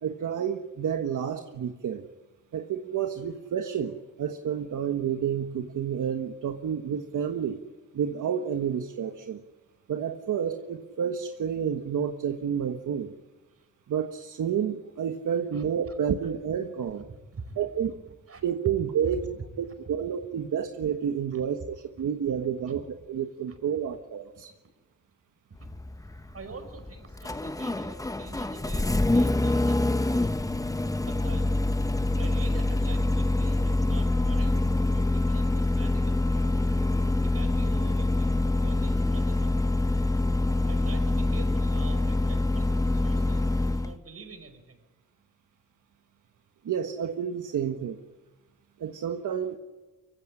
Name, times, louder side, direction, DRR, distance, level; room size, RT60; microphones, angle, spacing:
voice 1, 0.0-2.1 2.5-7.6 7.9-9.4 9.9-13.1 13.9-17.0 17.6-17.9 18.4-19.3 19.6-22.8 23.1-24.5 46.6-48.0 48.8-49.6, right 8 dB, 80° right, 6 dB, 1.4 m, -30 dB
voice 2, 15.5-16.0 17.1-18.0 18.3-18.4 19.0-19.4 19.9-20.0 21.3-21.4 22.5-22.8 23.5-23.8 24.4-24.5 25.5-25.7 26.3-30.6 31.0-31.5 32.1-36.7 37.2-40.0 40.7-44.8, right 4 dB, 50° right, 8 dB, 5.3 m, -46 dB
Engine starting, 25.6-44.0, left 2 dB, 10° left, 1.0 m, -25 dB
24.0 x 16.5 x 9.9 m, 1.2 s
cardioid pair, 95°, 30 cm